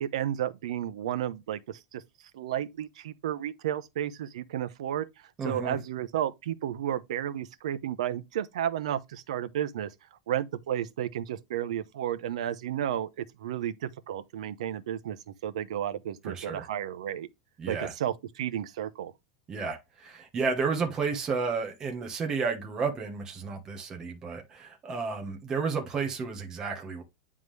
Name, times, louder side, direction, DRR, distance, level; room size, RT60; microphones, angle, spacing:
voice 1, 0.0-2.0 2.3-5.1 5.4-9.9 10.3-17.3 17.7-19.1, right 10 dB, 85° right, 0.8 m, -32 dB
voice 2, 5.4-5.8 16.2-16.7 17.6-17.9 19.5-27.0, right 5 dB, 20° right, 1.2 m, -32 dB
9.5 x 3.7 x 3.3 m
supercardioid pair, 165°, 3 cm